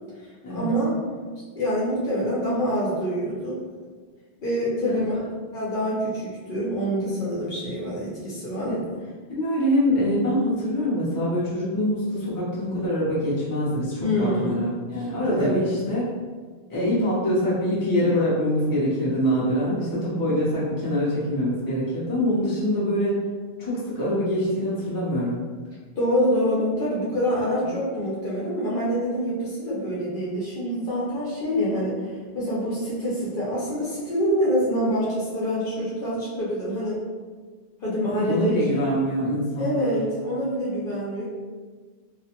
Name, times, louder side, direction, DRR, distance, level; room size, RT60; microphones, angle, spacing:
voice 1, 0.5-0.9 1.5-3.6 4.4-5.2 5.5-8.7 14.0-14.7 15.0-15.6 26.0-37.0 37.8-38.6 39.6-41.2, equal, 60° left, -7 dB, 0.8 m, -26 dB
voice 2, 8.5-8.8 9.3-16.1 16.7-23.2 23.6-25.4 27.6-27.7 38.1-39.9, equal, 25° left, -9 dB, 0.7 m, -24 dB
2.5 x 2.1 x 2.8 m, 1.5 s
omnidirectional pair, 1.1 m